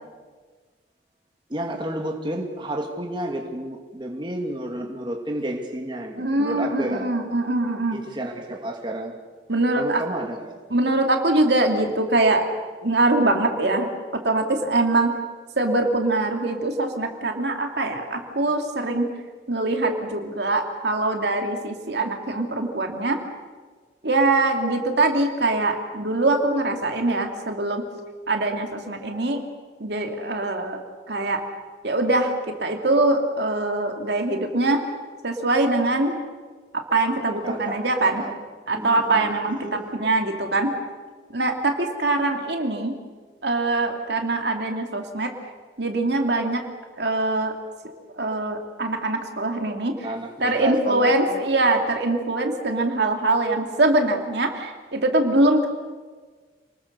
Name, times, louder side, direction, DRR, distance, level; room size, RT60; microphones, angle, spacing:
voice 1, 1.5-7.1 7.9-9.1 9.8-10.5 37.4-37.8 38.0-38.3 38.8-39.9 50.0-51.4, right 1 dB, 25° right, 1 dB, 2.4 m, -31 dB
voice 2, 6.2-8.0 9.5-10.0 10.7-12.4 12.8-15.1 15.6-19.1 19.5-23.2 24.0-27.8 28.3-29.4 29.8-30.8 31.1-31.4 31.8-32.3 32.6-34.8 35.2-36.2 36.7-38.2 38.7-40.7 41.3-42.9 43.4-45.3 45.8-46.6 47.0-47.5 48.1-49.9 50.4-55.7, right 2 dB, 60° right, 3 dB, 2.5 m, -23 dB
29.0 x 21.0 x 6.7 m, 1.5 s
head